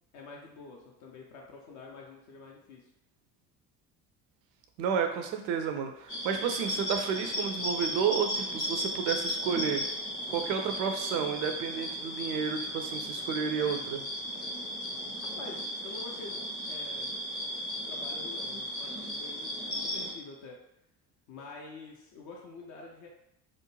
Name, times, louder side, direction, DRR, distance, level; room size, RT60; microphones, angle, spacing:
voice 1, 0.1-2.9 15.4-17.1 17.9-20.6 21.3-23.1, left 3 dB, 40° left, -1 dB, 0.5 m, -47 dB
voice 2, 4.8-9.8 10.3-14.0, right 7 dB, 45° right, 5 dB, 0.4 m, -31 dB
sound 1, 6.1-20.1, equal, 80° left, 0.8 m, -35 dB
2.5 x 2.1 x 3.0 m, 0.83 s
figure-of-eight pair, 55°, 48 cm